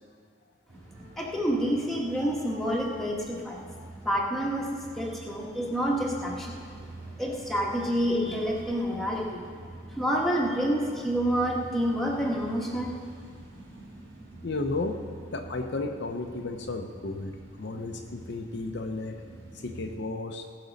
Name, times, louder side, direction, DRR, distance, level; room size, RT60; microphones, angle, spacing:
sound 1, 0.7-20.0, right 2 dB, 85° right, 3.6 m, -46 dB
voice 1, 1.2-3.6 4.0-6.6 7.2-9.4 10.0-13.0, equal, ahead, -3 dB, 1.4 m, -28 dB
voice 2, 14.4-15.0 15.3-19.1 19.6-20.5, left 3 dB, 60° left, 4 dB, 0.7 m, -33 dB
18.0 x 6.1 x 5.2 m, 2.1 s
head